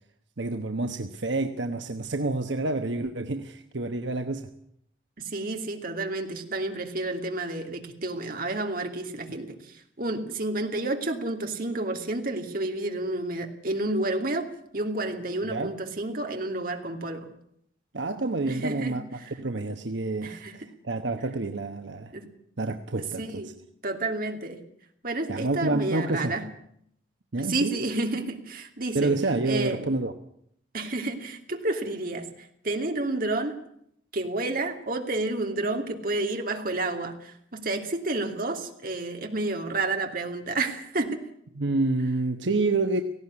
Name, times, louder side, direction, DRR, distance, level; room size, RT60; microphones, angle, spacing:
voice 1, 0.4-4.5 15.5-15.7 17.9-19.0 19.4-22.1 22.6-23.4 25.3-26.3 27.3-27.8 28.9-30.1 41.6-43.0, right 2 dB, 75° right, 1.2 m, -28 dB
voice 2, 5.2-17.3 18.5-19.1 20.2-20.7 22.1-22.3 23.0-23.5 23.8-24.6 25.0-26.5 27.4-29.2 29.5-29.9 30.7-33.6 34.1-41.2, right 2 dB, 50° right, 2.8 m, -30 dB
18.0 x 16.5 x 9.8 m
head